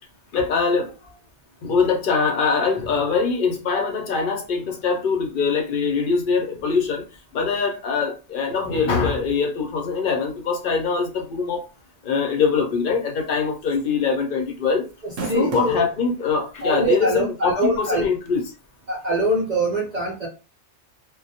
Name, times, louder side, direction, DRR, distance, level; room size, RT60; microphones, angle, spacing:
voice 1, 0.3-0.9 1.6-7.0 7.3-11.6 12.0-14.8 15.3-18.4, left 5 dB, 55° left, 0.6 m, -23 dB
sound 1, 13.2-13.4 13.8-13.9 14.9-15.8 16.6-16.7 18.3-18.4, right 4 dB, 85° right, 1.0 m, -31 dB
voice 2, 15.0-15.8 16.6-18.1 18.9-20.3, right 1 dB, 50° right, 0.5 m, -23 dB
2.2 x 2.1 x 2.7 m
omnidirectional pair, 1.3 m